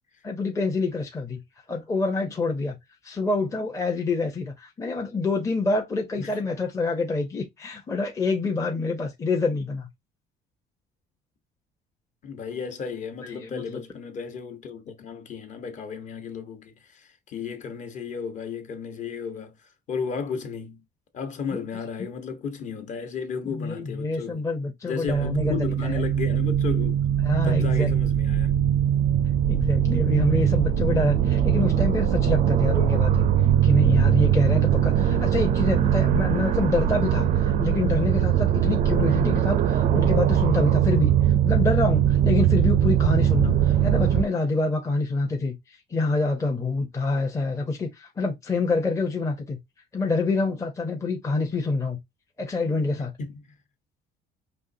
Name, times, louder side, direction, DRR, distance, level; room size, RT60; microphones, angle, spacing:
voice 1, 0.2-1.4 1.7-2.8 3.0-9.9 13.2-13.8 21.5-21.6 23.4-25.6 25.8-26.0 27.2-27.9 29.5-33.3 33.6-41.1 41.4-49.6 49.9-52.0 52.4-53.1, left 3 dB, 15° left, 0.8 m, -26 dB
voice 2, 12.2-20.8 21.1-24.4 24.8-27.0 27.4-28.6 53.2-53.6, left 6 dB, 45° left, 1.2 m, -34 dB
sound 1, 25.0-44.2, right 10 dB, 45° right, 0.5 m, -21 dB
5.4 x 3.0 x 2.7 m
cardioid pair, 165°, 18 cm